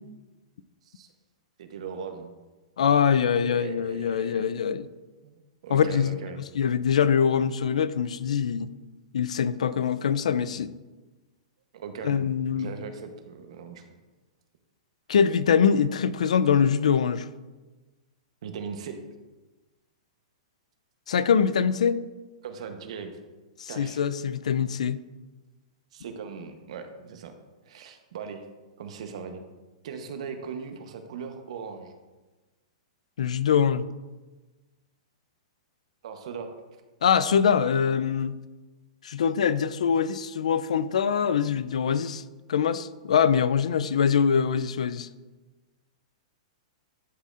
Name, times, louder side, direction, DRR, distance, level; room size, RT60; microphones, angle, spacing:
voice 1, 1.6-2.3 3.4-4.5 5.2-5.3 5.6-6.4 11.7-12.3 12.5-13.8 18.4-19.0 22.4-23.1 23.7-24.0 25.9-27.4 27.6-28.4 28.8-29.4 29.8-31.9 36.0-36.5, right 6 dB, 65° right, 0.9 m, -39 dB
voice 2, 2.8-4.9 5.7-6.2 6.5-8.7 9.1-10.7 12.0-12.7 15.1-17.3 21.1-22.0 23.6-25.0 33.2-33.8 37.0-38.4 39.0-42.2 42.5-45.1, left 7 dB, 90° left, 0.4 m, -23 dB
11.0 x 4.1 x 2.5 m
hypercardioid pair, 155°, 4 cm